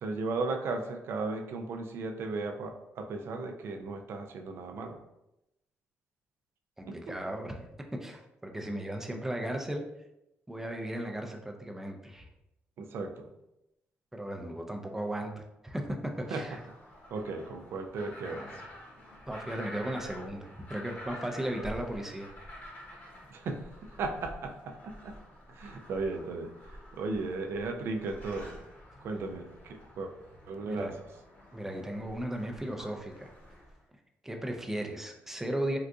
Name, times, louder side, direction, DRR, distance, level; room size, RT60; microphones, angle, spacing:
voice 1, 0.0-5.0 6.9-7.1 12.8-13.3 16.3-16.4 17.1-18.5 23.3-25.1 25.5-26.5 26.9-28.6 29.0-30.1 30.5-30.9, right 3 dB, 70° right, 5 dB, 0.4 m, -36 dB
voice 2, 6.8-7.7 8.0-9.8 10.5-12.3 14.1-16.6 18.2-18.6 19.3-22.3 29.1-29.3 30.6-30.9 31.5-33.3 34.2-35.8, right 1 dB, 10° right, 2 dB, 0.5 m, -36 dB
sound 1, 16.0-33.8, equal, 45° left, 1.1 m, -49 dB
3.7 x 2.5 x 2.3 m, 0.89 s
cardioid pair, 90°, 4 cm